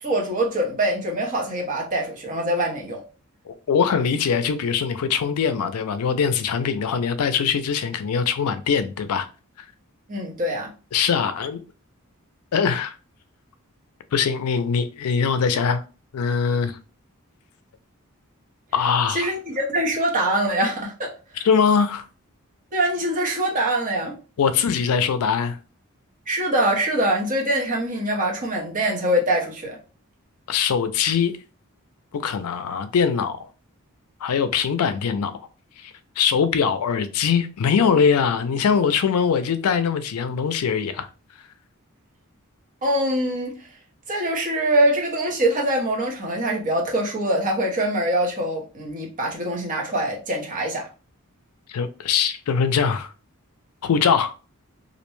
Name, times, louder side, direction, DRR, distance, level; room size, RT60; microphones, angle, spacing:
voice 1, 0.0-3.0 10.1-10.7 19.1-21.1 22.7-24.1 26.3-29.8 42.8-43.5 44.1-50.9, right 1 dB, 35° right, 0.8 m, -23 dB
voice 2, 3.5-9.3 10.9-11.6 12.5-12.9 14.1-15.8 16.1-16.8 18.7-19.3 21.4-22.1 24.4-25.6 30.5-31.3 32.1-33.5 34.2-35.3 35.8-41.1 51.7-53.1 53.8-54.3, left 6 dB, 85° left, 0.4 m, -22 dB
2.5 x 2.1 x 3.0 m
head